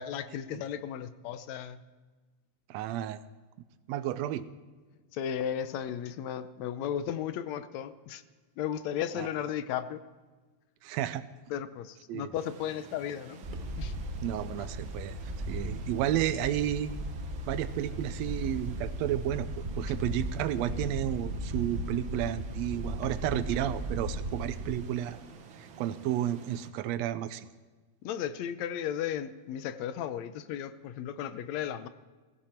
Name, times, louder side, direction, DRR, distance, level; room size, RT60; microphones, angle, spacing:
voice 1, 0.0-1.8 5.1-8.2 8.6-10.0 11.5-13.5 13.8-13.9 23.3-23.4 28.0-31.9, left 9 dB, 75° left, 12 dB, 1.9 m, -35 dB
voice 2, 2.7-3.2 3.9-4.5 9.2-9.3 10.8-11.2 12.1-12.3 14.2-15.2 15.5-16.9 17.5-25.2 25.6-27.5, right 12 dB, 80° right, 13 dB, 1.8 m, -32 dB
sound 1, 12.3-26.7, right 5 dB, 60° right, 1.5 m, -51 dB
Wind, 13.4-24.7, right 1 dB, 30° right, 0.8 m, -36 dB
15.5 x 15.5 x 4.5 m, 1.3 s
omnidirectional pair, 3.3 m